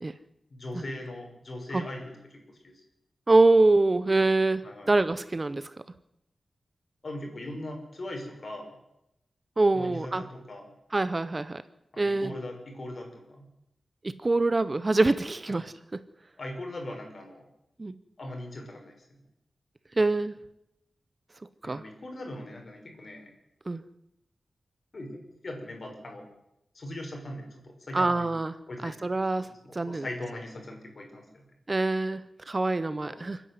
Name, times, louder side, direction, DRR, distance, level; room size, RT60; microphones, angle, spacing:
voice 1, 0.5-2.1 2.5-2.7 4.6-4.9 7.0-8.7 9.7-10.7 11.9-13.4 15.5-15.6 16.4-17.4 18.2-18.9 21.6-23.3 24.9-25.1 25.4-26.2 26.7-28.3 28.7-29.0 29.3-31.2 33.0-33.2, left 1 dB, 45° left, 2 dB, 5.9 m, -39 dB
voice 2, 3.3-5.7 9.6-10.3 10.9-11.6 12.0-12.3 14.0-16.0 17.8-17.9 20.0-20.3 21.6-21.8 23.7-23.8 27.9-28.5 28.8-30.0 31.7-33.4, right 2 dB, 30° right, 14 dB, 0.7 m, -25 dB
28.5 x 10.0 x 9.6 m, 0.85 s
wide cardioid pair, 140°, 0 cm